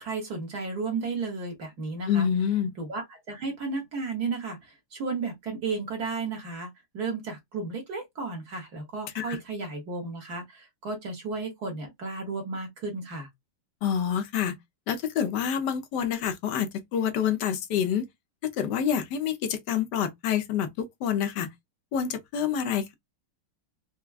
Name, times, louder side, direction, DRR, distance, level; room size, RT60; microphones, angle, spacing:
voice 1, 0.0-2.3 2.8-6.7 6.9-13.3, right 4 dB, 55° right, 1.6 m, -33 dB
voice 2, 2.1-2.7 9.1-9.4 13.8-14.5 14.9-18.1 18.4-21.5 21.9-22.9, left 8 dB, 65° left, 1.2 m, -27 dB
4.6 x 2.2 x 2.3 m
omnidirectional pair, 2.3 m